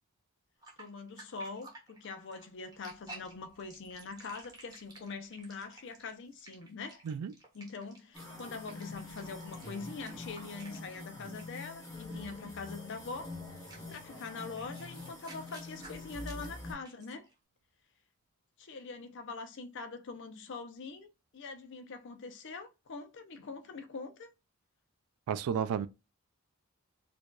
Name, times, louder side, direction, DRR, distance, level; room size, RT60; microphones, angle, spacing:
sound 1, 0.6-11.1 11.4-11.7 13.1-13.2 13.6-17.3, right 2 dB, 15° right, 1.1 m, -53 dB
voice 1, 0.8-7.0 7.5-13.4 13.9-17.3 18.6-24.3, left 4 dB, 55° left, 0.5 m, -43 dB
sound 2, 8.1-16.7, left 2 dB, 15° left, 1.6 m, -45 dB
voice 2, 25.3-25.9, right 7 dB, 80° right, 0.3 m, -32 dB
4.6 x 2.6 x 2.2 m
head